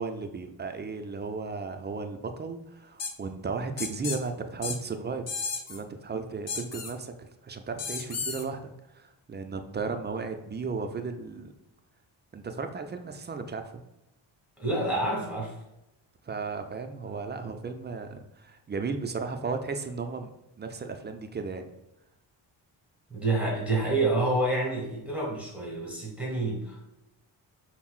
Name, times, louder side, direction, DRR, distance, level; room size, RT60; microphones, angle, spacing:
voice 1, 0.0-5.3 5.7-11.5 12.3-13.8 16.2-20.3 20.6-21.6, right 4 dB, 25° right, 7 dB, 0.3 m, -35 dB
sound 1, 3.0-3.1 3.8-4.2 4.6-4.8 5.3-5.8 6.5-6.9 7.8-8.4, left 5 dB, 35° left, 0.5 m, -33 dB
voice 2, 14.6-15.6 23.1-26.9, right 2 dB, 5° right, -4 dB, 1.4 m, -28 dB
5.5 x 2.1 x 2.4 m, 0.90 s
supercardioid pair, 55°, 50 cm